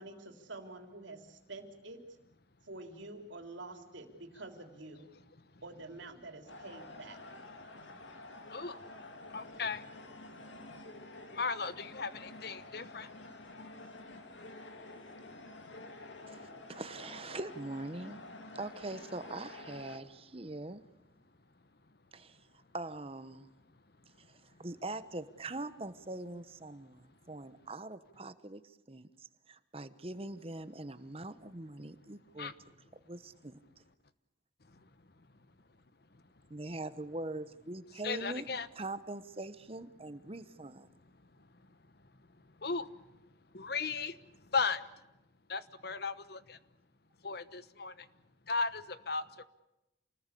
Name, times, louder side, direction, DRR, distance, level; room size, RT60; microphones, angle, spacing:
voice 1, 0.0-2.0 2.6-5.1 5.6-7.2, right 2 dB, 90° right, 5 dB, 3.6 m, -47 dB
sound 1, 6.5-20.0, left 2 dB, 80° left, 2.6 m, -49 dB
voice 2, 9.3-9.8 11.4-13.1 32.4-32.5 38.0-38.7 42.6-42.9 43.5-44.1 44.5-44.8 45.5-46.4 47.2-47.9 48.5-49.2, left 4 dB, 55° left, 14 dB, 1.1 m, -35 dB
voice 3, 16.3-18.2 18.5-20.8 22.1-22.4 22.7-23.5 24.3-28.6 28.9-32.5 33.1-33.6 36.5-38.5 38.7-40.9, right 2 dB, 30° right, 12 dB, 1.1 m, -42 dB
28.0 x 20.0 x 8.5 m, 0.93 s
head